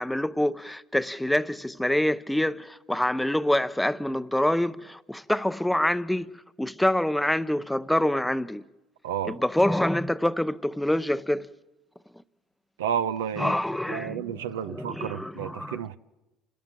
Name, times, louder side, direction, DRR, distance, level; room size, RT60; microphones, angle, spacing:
voice 1, 0.0-6.3 6.6-8.6 9.2-11.5 13.4-15.8, left 1 dB, 5° left, 0.8 m, -26 dB
voice 2, 9.0-9.4 12.8-13.5 13.9-16.0, right 8 dB, 80° right, 0.8 m, -31 dB
28.0 x 17.0 x 7.6 m
hypercardioid pair, 70°, 0 cm